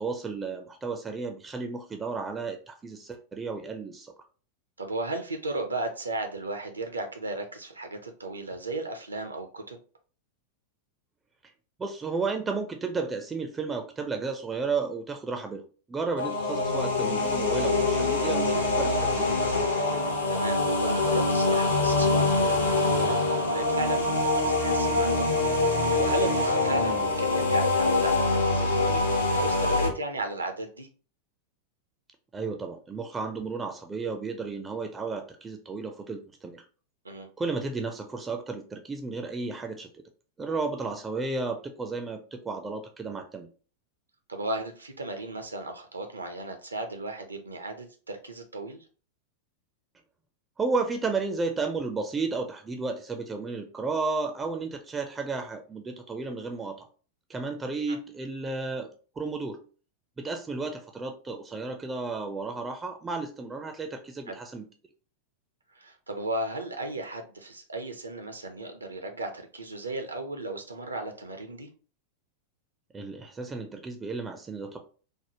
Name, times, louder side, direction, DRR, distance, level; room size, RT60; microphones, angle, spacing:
voice 1, 0.0-4.1 11.8-19.3 26.8-27.1 32.3-36.6 37.4-40.0 40.4-43.5 50.6-56.9 57.3-58.9 59.2-59.6 60.2-64.6 72.9-74.8, right 4 dB, 15° right, 5 dB, 0.4 m, -33 dB
voice 2, 4.8-9.8 20.3-25.3 25.9-30.9 37.0-37.3 44.3-48.8 64.3-64.4 65.8-71.7, right 2 dB, 80° right, 6 dB, 0.5 m, -35 dB
sound 1, 16.2-29.9, left 2 dB, 75° left, 0.7 m, -24 dB
3.5 x 2.1 x 2.8 m, 0.39 s
figure-of-eight pair, 90°, 0 cm